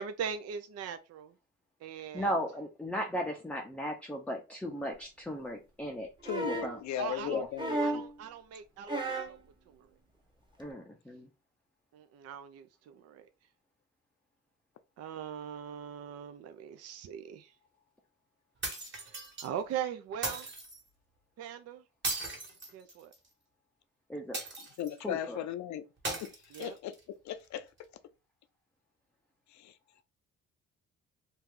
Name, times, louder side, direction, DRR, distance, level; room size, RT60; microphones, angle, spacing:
voice 1, 0.0-1.3 1.8-2.3 7.0-7.4 7.8-9.4 9.7-9.9 11.9-13.3 15.0-17.5 18.9-20.5 21.4-21.8 22.7-23.1 26.5-26.8, right 8 dB, 55° right, 0.4 m, -40 dB
voice 2, 2.1-6.1 6.6-6.8 7.3-7.5 10.6-11.3 24.1-24.4 25.0-25.4, equal, 5° left, 0.5 m, -36 dB
voice 3, 6.2-8.0 24.8-25.8 26.2-26.3 26.6-26.9 27.2-27.6 29.5-29.7, left 11 dB, 65° left, 0.5 m, -37 dB
sound 1, 6.2-6.8 7.6-8.1 8.9-9.4 10.6-10.7, right 2 dB, 15° right, 0.9 m, -33 dB
sound 2, 18.6-19.5 20.2-20.8 22.0-23.3 24.3-25.0 26.0-27.0, right 3 dB, 40° right, 1.5 m, -37 dB
2.7 x 2.4 x 3.7 m
cardioid pair, 90°, 30 cm